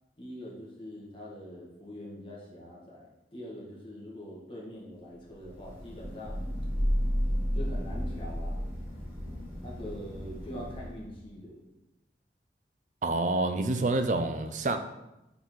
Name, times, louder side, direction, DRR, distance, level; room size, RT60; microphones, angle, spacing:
voice 1, 0.2-6.5 7.5-8.6 9.6-11.6, equal, 30° left, -4 dB, 1.7 m, -43 dB
Thunder / Rain, 5.4-11.1, equal, 10° right, 2.1 m, -32 dB
voice 2, 13.0-14.8, right 2 dB, 45° right, 7 dB, 0.5 m, -27 dB
6.8 x 4.1 x 4.5 m, 0.94 s
head